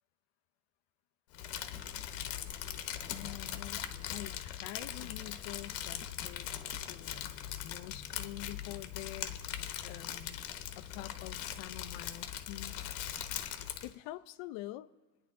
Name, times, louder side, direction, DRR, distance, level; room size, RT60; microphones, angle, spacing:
Crumpling crinkling, 1.3-13.9, left 11 dB, 85° left, 1.2 m, -40 dB
voice 1, 3.1-7.3 7.6-9.4 9.8-10.4 10.8-12.8 13.8-14.9, left 15 dB, 65° left, 0.7 m, -46 dB
27.0 x 9.8 x 3.7 m
cardioid pair, 140°, 49 cm